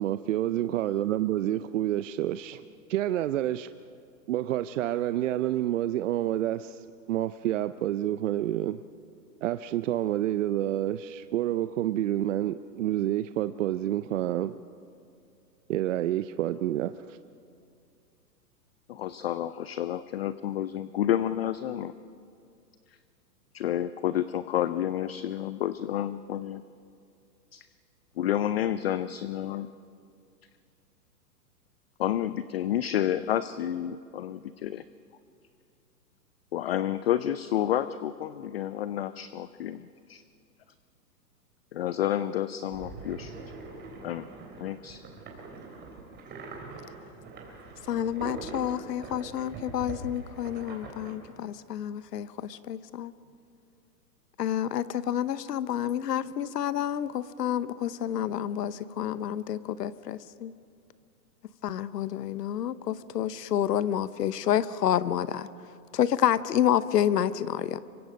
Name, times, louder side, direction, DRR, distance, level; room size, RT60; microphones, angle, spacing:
voice 1, 0.0-2.6 2.9-3.7 4.3-8.8 9.4-14.6 15.7-17.2, right 13 dB, 50° right, 12 dB, 0.6 m, -28 dB
voice 2, 18.9-21.9 23.5-26.6 27.5-27.7 28.2-29.7 32.0-34.8 36.5-40.2 41.7-43.3 44.0-44.3 44.6-45.0, left 11 dB, 40° left, 14 dB, 0.4 m, -30 dB
sound 1, 42.7-51.1, right 3 dB, 20° right, 3.7 m, -43 dB
voice 3, 47.9-53.1 54.4-60.5 61.6-65.5 65.9-67.8, left 10 dB, 70° left, 15 dB, 1.0 m, -29 dB
26.5 x 23.5 x 5.3 m, 2.4 s
hypercardioid pair, 135°, 50 cm